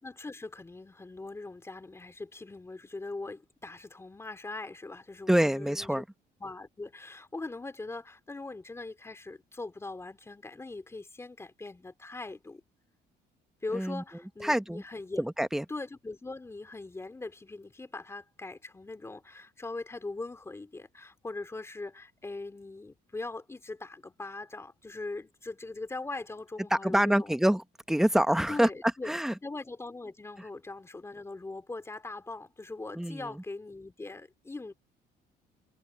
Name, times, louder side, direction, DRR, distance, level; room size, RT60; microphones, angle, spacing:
voice 1, 0.0-6.0 6.4-12.6 13.6-15.3 15.7-27.4 28.5-29.1 29.4-34.7, left 3 dB, 15° left, 3.2 m, -41 dB
voice 2, 5.3-6.0 13.7-14.0 14.4-14.8 15.2-15.6 26.7-28.7 29.0-29.3 33.0-33.3, equal, 5° right, 1.1 m, -26 dB
cardioid pair, 110°, 17 cm